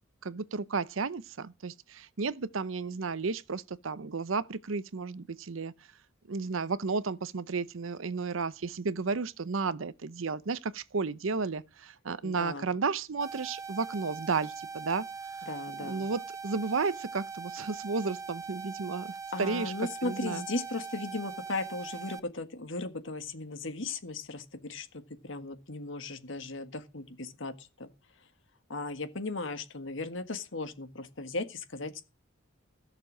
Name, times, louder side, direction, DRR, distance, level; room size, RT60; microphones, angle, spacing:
voice 1, 0.2-5.7 6.3-15.0 15.8-19.1 19.4-19.7 20.0-20.4, right 4 dB, 75° right, 0.7 m, -33 dB
voice 2, 12.2-12.7 15.5-16.1 19.3-27.9 28.7-32.0, left 3 dB, 65° left, 1.6 m, -37 dB
sound 1, 13.2-22.2, right 5 dB, 15° right, 0.7 m, -41 dB
15.5 x 6.9 x 6.1 m
head